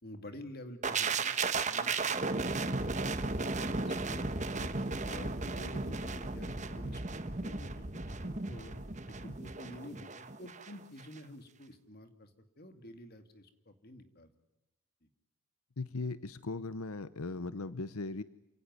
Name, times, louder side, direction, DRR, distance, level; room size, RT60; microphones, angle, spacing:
voice 1, 0.0-1.3 1.7-2.8 3.4-4.7 5.0-7.0 7.4-8.7 9.1-12.3 12.6-14.3, left 1 dB, 45° left, 8 dB, 2.4 m, -49 dB
sound 1, 0.8-10.7 11.0-11.2, right 3 dB, 35° right, 1.3 m, -35 dB
voice 2, 15.8-18.2, left 3 dB, 85° left, 15 dB, 0.8 m, -38 dB
29.0 x 17.5 x 9.6 m, 0.95 s
head